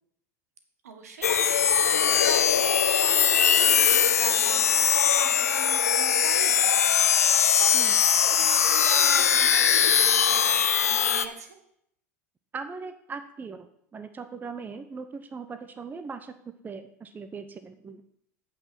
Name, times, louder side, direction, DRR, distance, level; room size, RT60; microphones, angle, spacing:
voice 1, 0.8-6.9 7.2-11.6, right 5 dB, 75° right, 5 dB, 1.4 m, -41 dB
sound 1, 1.2-11.2, left 8 dB, 85° left, 0.5 m, -21 dB
voice 2, 12.5-18.0, right 5 dB, 20° right, 9 dB, 0.8 m, -39 dB
8.4 x 5.8 x 6.1 m, 0.70 s
figure-of-eight pair, 80°, 8 cm